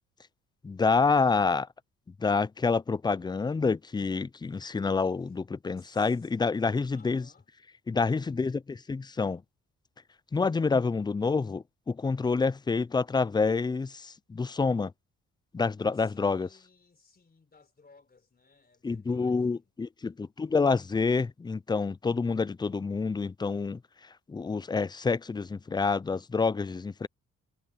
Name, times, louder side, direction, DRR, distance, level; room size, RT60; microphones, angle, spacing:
voice 1, 0.6-1.7 2.2-7.2 7.9-9.4 10.3-14.9 15.5-16.5 18.8-23.8 24.3-27.1, left 4 dB, 15° left, 0.4 m, -28 dB
voice 2, 5.7-6.3 6.9-7.5 15.9-19.7, left 4 dB, 30° left, 3.9 m, -60 dB
cardioid pair, 90°, 30 cm